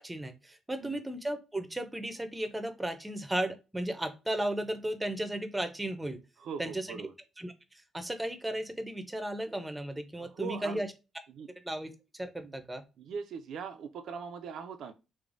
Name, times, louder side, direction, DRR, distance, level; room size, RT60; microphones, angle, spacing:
voice 1, 0.0-6.2 6.6-7.0 7.4-7.5 7.9-10.9 11.6-12.8, right 1 dB, 10° right, 0.5 m, -35 dB
voice 2, 6.4-7.1 10.2-10.8 11.3-11.5 12.4-12.5 13.0-14.9, right 6 dB, 75° right, 0.3 m, -41 dB
3.1 x 2.0 x 2.5 m
cardioid pair, 90°, 0 cm